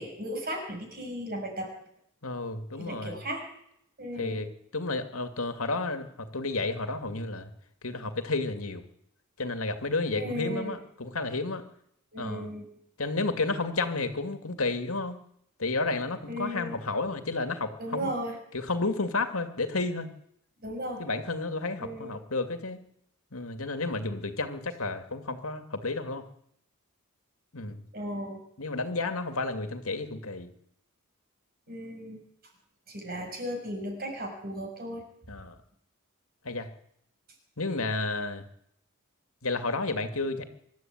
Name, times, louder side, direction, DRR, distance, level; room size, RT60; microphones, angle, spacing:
voice 1, 0.0-1.7 2.8-3.4 4.0-4.4 10.1-10.8 12.1-12.7 16.3-16.8 17.8-18.4 20.6-21.0 21.8-22.1 27.9-28.4 31.7-32.2 32.9-35.0, equal, 45° right, 3 dB, 6.5 m, -35 dB
voice 2, 2.2-3.2 4.2-4.5 4.7-7.5 7.8-8.8 9.4-11.6 12.2-12.5 13.0-15.2 15.6-18.1 18.5-20.1 21.0-22.8 23.3-26.3 27.5-27.8 28.6-30.5 35.3-35.6 36.4-36.7 37.6-38.4 39.4-40.4, left 3 dB, 75° left, 7 dB, 2.4 m, -31 dB
25.0 x 12.5 x 9.1 m, 0.73 s
head